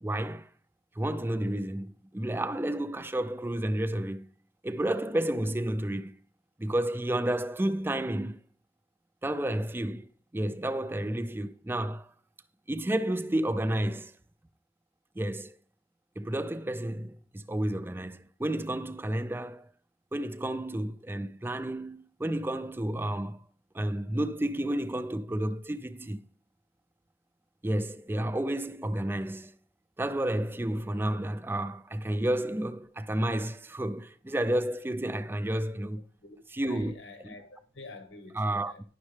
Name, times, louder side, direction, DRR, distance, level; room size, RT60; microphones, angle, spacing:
voice 1, 0.0-0.5 1.0-4.3 4.6-6.1 6.6-8.4 9.2-12.1 12.7-14.1 15.2-15.5 16.2-19.7 20.1-23.4 23.7-26.2 27.6-29.5 30.0-36.0 36.5-37.0 38.4-38.7, right 1 dB, 10° right, 0.4 m, -31 dB
voice 2, 36.2-38.8, left 2 dB, 90° left, 1.2 m, -48 dB
10.5 x 6.2 x 3.3 m
head